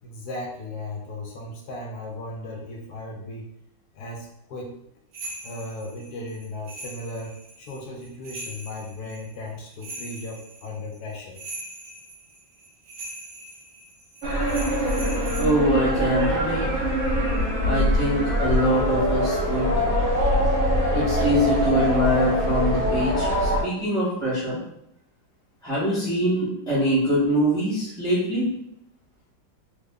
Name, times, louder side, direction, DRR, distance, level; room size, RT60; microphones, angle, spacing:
voice 1, 0.0-3.5 3.9-4.8 5.4-11.4, left 2 dB, 70° left, 0 dB, 0.9 m, -36 dB
sound 1, 5.1-15.4, right 2 dB, 60° right, 1.0 m, -41 dB
sound 2, 14.2-23.6, equal, 75° right, 0.6 m, -23 dB
voice 2, 15.4-16.9 17.7-19.8 20.9-24.6 25.6-28.5, equal, 5° left, -8 dB, 0.6 m, -23 dB
3.3 x 2.1 x 3.5 m, 0.76 s
omnidirectional pair, 2.1 m